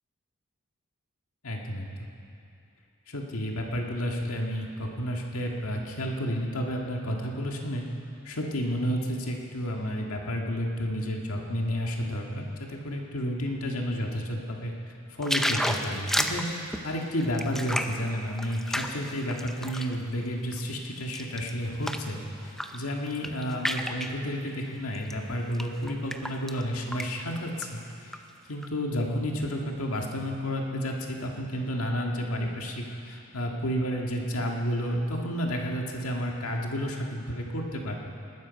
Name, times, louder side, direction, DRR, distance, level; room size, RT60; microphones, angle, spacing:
voice 1, 1.4-2.1 3.1-7.9 8.3-14.7 15.1-16.5 16.8-22.2 22.7-28.2 28.5-38.0, equal, 80° left, 0 dB, 1.8 m, -31 dB
sound 1, 15.2-20.0 20.4-22.1 22.5-22.8 23.1-24.2 24.9-25.1 25.5-26.6 26.9-27.1 27.4-28.2 28.6-28.7, equal, ahead, 0.5 m, -31 dB
19.5 x 13.0 x 5.2 m, 2.6 s
head